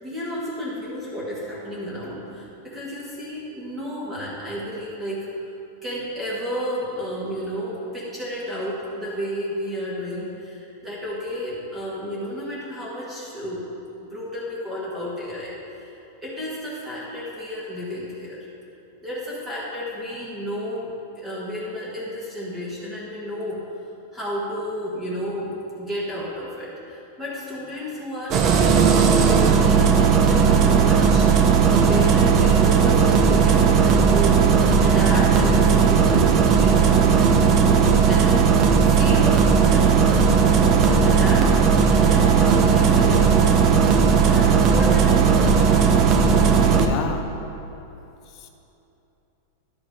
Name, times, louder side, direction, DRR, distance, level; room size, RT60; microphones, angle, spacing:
voice 1, 0.0-5.2 5.8-13.7 14.0-15.9 16.2-18.5 19.0-23.6 24.1-31.3 31.7-34.4 34.8-43.7 44.2-45.6, equal, 10° right, -7 dB, 1.5 m, -32 dB
Engine starting, 28.3-46.9, right 6 dB, 35° right, 0.6 m, -16 dB
sound 1, 40.6-46.7, equal, 60° right, 2.0 m, -37 dB
voice 2, 46.8-47.3 48.3-48.5, left 6 dB, 40° left, 6 dB, 0.6 m, -30 dB
11.5 x 5.3 x 4.6 m, 2.9 s
supercardioid pair, 150°, 0 cm